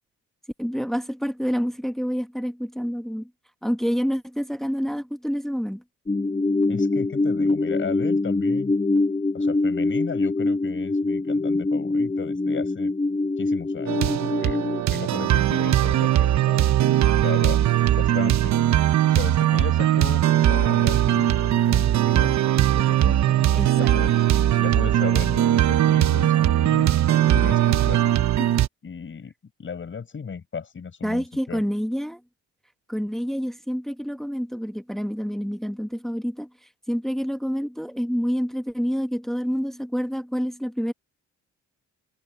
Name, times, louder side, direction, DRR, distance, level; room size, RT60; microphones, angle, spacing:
voice 1, 0.6-3.3 3.6-5.8 23.5-23.9 28.4-28.5 31.0-32.2 32.9-36.5 36.9-40.9, equal, ahead, 1.2 m, -27 dB
sound 1, 6.1-14.8, left 2 dB, 20° left, 1.6 m, -24 dB
voice 2, 6.7-8.7 9.3-12.9 13.4-14.6 14.9-17.6 17.9-18.5 19.0-22.4 22.7-24.3 24.6-28.2 28.8-29.3 29.6-31.6, left 6 dB, 40° left, 7.6 m, -35 dB
sound 2, 13.9-28.7, right 12 dB, 65° right, 1.1 m, -20 dB
cardioid pair, 90°, 30 cm